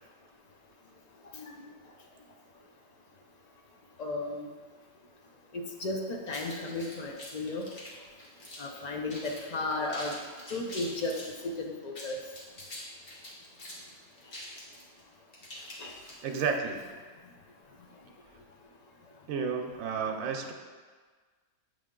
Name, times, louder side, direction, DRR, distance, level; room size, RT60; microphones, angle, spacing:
voice 1, 1.3-1.7 4.0-4.5 5.5-7.7 8.6-10.1 10.5-12.2 15.8-15.9, left 2 dB, 65° left, 1 dB, 0.4 m, -34 dB
sound 1, 6.3-8.8 9.1-9.4 9.7-11.3 11.8-16.4, left 1 dB, 40° left, 1.3 m, -45 dB
voice 2, 16.2-16.8 19.3-20.5, right 5 dB, 75° right, 3 dB, 1.0 m, -31 dB
7.7 x 3.5 x 3.7 m, 1.5 s
omnidirectional pair, 1.5 m